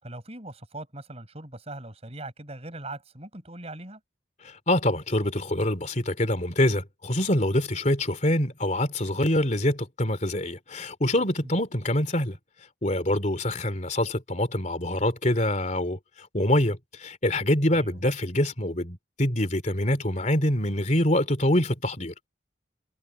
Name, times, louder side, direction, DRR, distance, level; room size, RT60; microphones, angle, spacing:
voice 1, 0.0-4.0 11.4-11.5 17.7-18.0, right 2 dB, 30° right, 5.4 m, -40 dB
voice 2, 4.4-12.4 12.8-22.1, left 1 dB, 40° left, 3.4 m, -25 dB
head